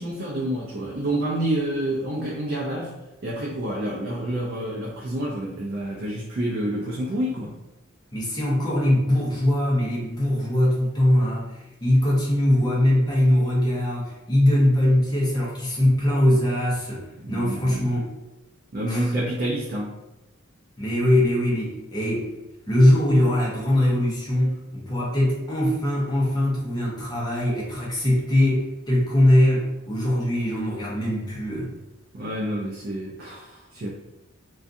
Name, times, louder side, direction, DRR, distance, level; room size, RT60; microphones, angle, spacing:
voice 1, 0.0-2.9 3.2-7.5 17.2-18.0 18.7-19.9 32.1-33.9, right 1 dB, 45° right, -4 dB, 0.4 m, -28 dB
voice 2, 8.1-18.1 18.9-19.1 20.8-22.3 22.7-31.7, left 1 dB, 20° left, -5 dB, 0.6 m, -21 dB
2.5 x 2.3 x 2.5 m, 0.94 s
head